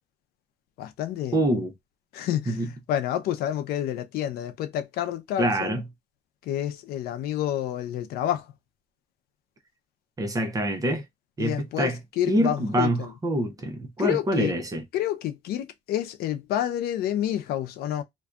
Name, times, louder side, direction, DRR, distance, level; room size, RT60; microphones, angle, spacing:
voice 1, 0.8-1.4 2.1-5.8 6.4-8.5 11.4-13.1 14.0-14.5 14.9-18.0, left 11 dB, 90° left, 0.5 m, -29 dB
voice 2, 1.3-1.7 2.5-2.7 5.4-5.9 10.2-11.0 11.4-12.0 12.3-14.8, right 1 dB, 20° right, 0.6 m, -25 dB
2.6 x 2.2 x 2.3 m
cardioid pair, 135°, 16 cm